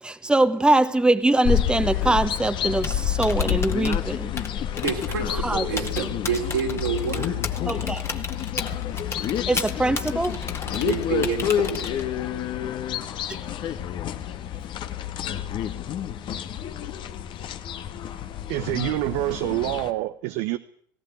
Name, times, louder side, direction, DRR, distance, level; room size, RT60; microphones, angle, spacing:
voice 1, 0.0-4.3 5.4-5.6 7.7-8.0 9.5-10.4, right 2 dB, 10° right, 1.4 m, -22 dB
sound 1, 1.4-19.9, left 10 dB, 45° left, 1.7 m, -29 dB
Typing, 2.7-12.3, left 4 dB, 25° left, 2.1 m, -35 dB
voice 2, 4.8-7.5 10.7-12.0, right 6 dB, 85° right, 4.4 m, -29 dB
voice 3, 18.5-20.6, right 17 dB, 65° right, 0.9 m, -26 dB
18.5 x 17.5 x 9.6 m
hypercardioid pair, 75°, 11 cm